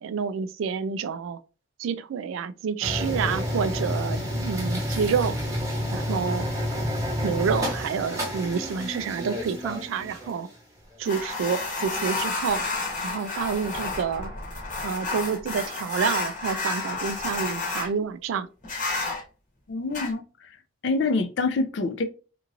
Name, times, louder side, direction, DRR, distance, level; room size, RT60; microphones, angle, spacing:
voice 1, 0.0-1.4 1.8-5.4 5.9-6.5 7.2-10.5 11.0-12.6 13.0-14.3 14.8-18.5, right 6 dB, 80° right, 0.3 m, -28 dB
sound 1, 2.8-10.4, equal, 15° right, 0.8 m, -29 dB
sound 2, 11.0-17.9 18.6-19.2 19.9-20.1, left 3 dB, 35° left, 1.0 m, -31 dB
voice 2, 19.7-20.5 20.8-22.0, left 3 dB, 60° left, 0.4 m, -26 dB
2.9 x 2.5 x 2.5 m
head